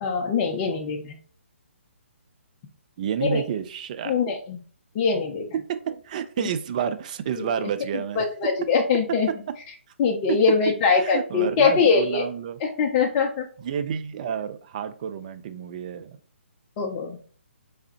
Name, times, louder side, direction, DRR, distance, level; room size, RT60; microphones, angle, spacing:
voice 1, 0.0-1.2 3.2-3.4 4.0-4.6 4.9-5.5 6.4-6.5 7.4-7.7 8.2-9.3 10.0-12.3 12.6-13.5 16.8-17.2, left 5 dB, 25° left, 3 dB, 0.5 m, -22 dB
voice 2, 3.0-4.2 5.7-8.3 10.3-10.4 10.9-12.6 13.6-16.2, right 8 dB, 35° right, 10 dB, 0.4 m, -30 dB
3.5 x 3.3 x 2.7 m, 0.43 s
figure-of-eight pair, 135°, 7 cm